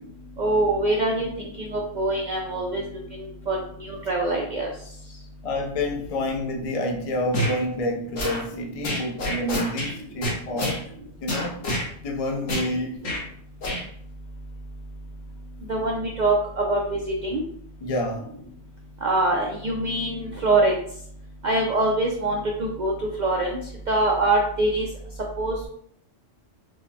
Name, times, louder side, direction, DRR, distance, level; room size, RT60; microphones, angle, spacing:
voice 1, 0.4-2.8 3.2-3.6 3.9-4.7 15.7-17.4 19.0-20.8 21.4-23.5 23.9-24.9 25.4-25.7, right 2 dB, 70° right, -1 dB, 0.4 m, -24 dB
voice 2, 5.4-10.8 11.2-11.6 12.0-13.1 17.8-18.3, left 1 dB, 55° left, 0 dB, 0.4 m, -28 dB
sound 1, 7.3-7.6 8.1-8.4 8.8-9.9 10.2-10.8 11.3-11.9 12.5-12.7 13.0-13.2 13.6-13.8, left 1 dB, 85° left, 1.3 m, -27 dB
4.8 x 2.1 x 2.7 m, 0.65 s
omnidirectional pair, 1.3 m